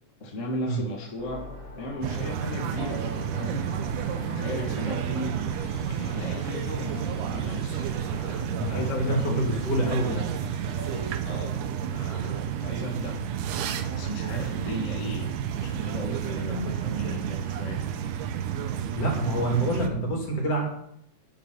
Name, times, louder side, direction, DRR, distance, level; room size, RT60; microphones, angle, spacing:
voice 1, 0.2-1.5 1.8-5.3 5.9-9.7 11.2-13.3 13.6-17.8, equal, 30° left, 0 dB, 1.5 m, -36 dB
sound 1, 1.2-11.2, left 1 dB, 10° left, 3.4 m, -42 dB
sound 2, 2.0-19.9, right 8 dB, 80° right, 2.4 m, -31 dB
voice 2, 8.6-10.3 19.0-20.7, right 1 dB, 50° left, -1 dB, 4.0 m, -27 dB
11.5 x 11.0 x 4.4 m, 0.75 s
omnidirectional pair, 3.6 m